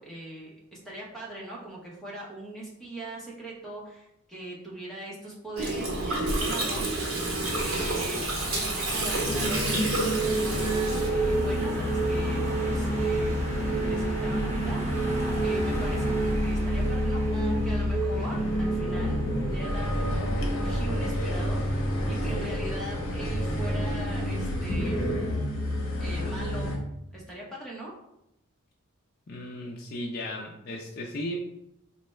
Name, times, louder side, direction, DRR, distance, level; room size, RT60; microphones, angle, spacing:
voice 1, 0.0-13.5 13.8-15.1 15.4-25.1 26.0-26.7 27.1-27.9, right 1 dB, ahead, -5 dB, 0.7 m, -41 dB
Gurgling, 5.6-11.1, right 2 dB, 65° right, 1.0 m, -29 dB
Car passing by / Engine, 6.4-25.1, equal, 30° right, 0.7 m, -36 dB
sound 1, 9.1-26.8, right 1 dB, 65° left, 0.8 m, -28 dB
voice 2, 29.3-31.4, left 1 dB, 45° left, -1 dB, 0.4 m, -35 dB
4.1 x 2.2 x 3.1 m, 0.84 s
head